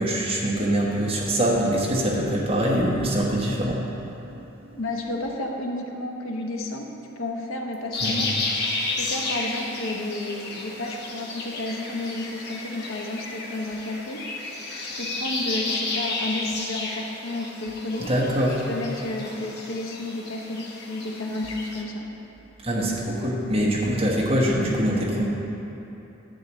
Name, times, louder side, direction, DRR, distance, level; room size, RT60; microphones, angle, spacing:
voice 1, 0.0-3.8 8.0-8.3 18.1-18.6 22.6-25.2, equal, 25° right, -4 dB, 1.2 m, -23 dB
voice 2, 4.8-6.9 7.2-8.3 9.0-14.3 14.8-18.1 18.7-22.0, left 2 dB, 80° left, 2 dB, 0.8 m, -31 dB
sound 1, 7.9-21.8, left 3 dB, 50° left, 0.9 m, -32 dB
10.5 x 8.7 x 3.1 m, 3.0 s
head